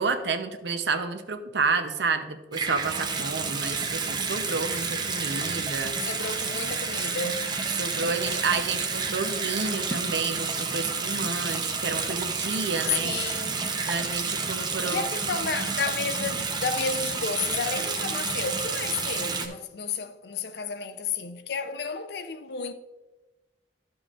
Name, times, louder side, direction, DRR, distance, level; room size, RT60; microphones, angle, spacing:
voice 1, 0.0-6.0 7.8-13.2 13.9-15.0, right 4 dB, 70° right, 0.7 m, -30 dB
Water tap faucet / Sink (filling or washing) / Bathtub (filling or washing), 2.5-19.5, right 4 dB, 25° right, 0.7 m, -30 dB
voice 2, 6.0-7.5 12.9-13.7 14.9-22.7, left 5 dB, 65° left, 0.6 m, -32 dB
12.0 x 7.1 x 2.5 m
head